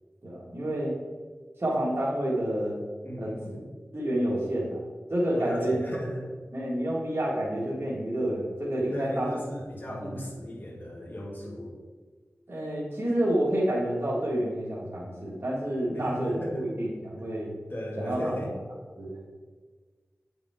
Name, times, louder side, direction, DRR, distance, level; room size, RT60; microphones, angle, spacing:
voice 1, 0.2-1.0 1.6-2.8 3.2-3.3 3.9-4.8 5.1-5.8 6.5-9.3 9.9-10.2 12.5-17.5 18.0-18.4 19.0-19.3, right 1 dB, 45° right, -7 dB, 1.8 m, -29 dB
voice 2, 3.0-3.7 5.3-6.3 8.9-11.7 15.9-16.7 17.7-18.5, equal, 40° left, -2 dB, 1.8 m, -36 dB
8.3 x 5.5 x 3.7 m, 1.5 s
wide cardioid pair, 60°, 5 cm